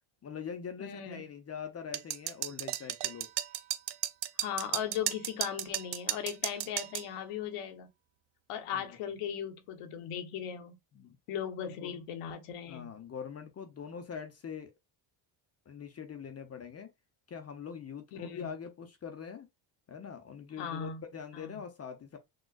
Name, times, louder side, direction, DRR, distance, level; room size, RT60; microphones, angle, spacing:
voice 1, 0.2-3.3 8.7-9.0 10.9-11.2 11.6-12.0 12.7-14.7 15.7-16.9 17.3-19.5 19.9-22.2, left 7 dB, 30° left, 0.7 m, -43 dB
voice 2, 0.8-1.3 4.4-7.9 8.5-10.8 11.3-12.9 18.1-18.5 20.6-21.0 21.3-21.6, left 8 dB, 85° left, 1.2 m, -38 dB
sound 1, 1.9-7.1, right 14 dB, 55° right, 0.5 m, -34 dB
6.3 x 2.4 x 2.3 m
cardioid pair, 135°, 50 cm